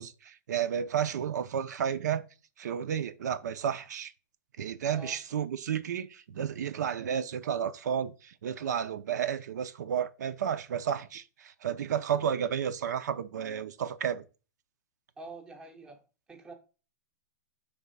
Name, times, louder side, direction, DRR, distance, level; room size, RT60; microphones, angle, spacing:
voice 1, 0.0-2.2 2.6-4.1 4.6-14.2, right 8 dB, 80° right, 0.7 m, -32 dB
voice 2, 15.2-16.0 16.3-16.5, right 2 dB, 10° right, 0.8 m, -46 dB
6.0 x 3.6 x 5.4 m
supercardioid pair, 175°, 9 cm